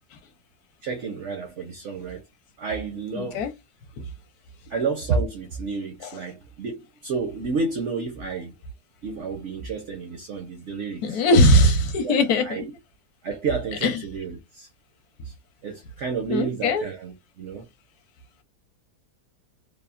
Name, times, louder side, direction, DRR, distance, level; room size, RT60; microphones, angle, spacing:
voice 1, 0.8-2.2 2.6-3.4 4.7-8.5 9.0-11.2 12.0-12.7 13.2-14.7 15.2-15.3 15.6-17.6, right 4 dB, 65° right, 0.7 m, -30 dB
voice 2, 3.2-3.5 4.0-4.1 6.0-6.2 11.0-12.7 13.8-14.0 16.3-16.9, left 1 dB, 70° left, 1.1 m, -20 dB
3.4 x 2.0 x 2.3 m
omnidirectional pair, 1.8 m